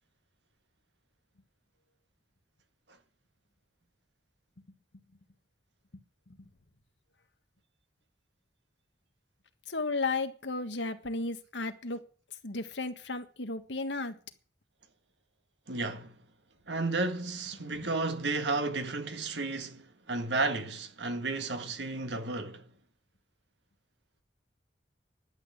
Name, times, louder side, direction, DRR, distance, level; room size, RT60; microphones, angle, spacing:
voice 1, 9.7-12.0 12.4-14.1, left 3 dB, 75° left, 1.6 m, -34 dB
voice 2, 15.7-16.2 16.7-22.7, right 3 dB, 70° right, 1.8 m, -33 dB
11.5 x 8.5 x 8.8 m
head